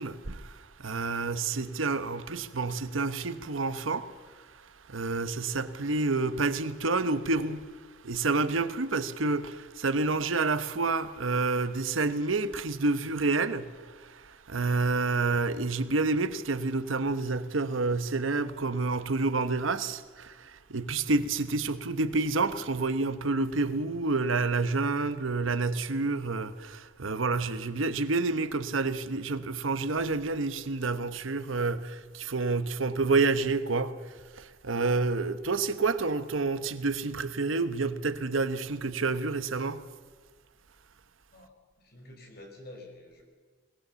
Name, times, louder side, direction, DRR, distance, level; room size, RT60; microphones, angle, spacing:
voice 1, 0.0-39.8, right 3 dB, 90° right, 1.0 m, -29 dB
voice 2, 41.8-43.2, left 1 dB, 50° left, 5.0 m, -48 dB
21.5 x 18.5 x 7.0 m
head